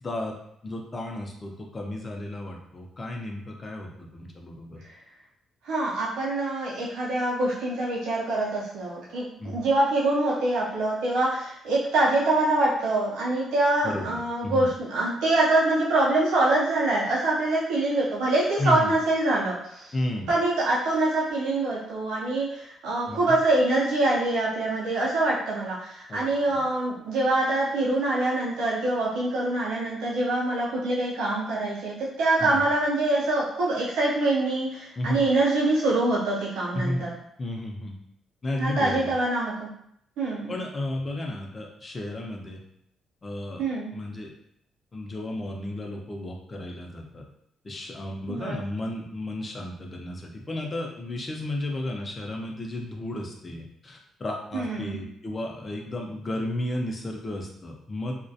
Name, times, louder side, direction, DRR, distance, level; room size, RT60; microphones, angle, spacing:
voice 1, 0.0-0.4 0.6-4.8 9.4-9.6 13.8-14.7 18.6-18.9 19.9-20.3 23.1-23.4 26.1-26.2 26.5-26.6 32.4-32.6 35.0-35.2 36.7-37.0 37.4-38.0 38.4-39.1 40.5-42.6 43.2-43.6 43.9-44.3 44.9-47.2 47.6-58.2, left 1 dB, 30° left, 1 dB, 0.5 m, -33 dB
voice 2, 5.6-19.9 20.3-37.1 38.6-39.7 40.2-40.6 43.6-43.9 48.3-48.6 54.5-55.0, right 2 dB, 90° right, -6 dB, 0.5 m, -25 dB
2.3 x 2.1 x 2.7 m, 0.73 s
cardioid pair, 90°, 0 cm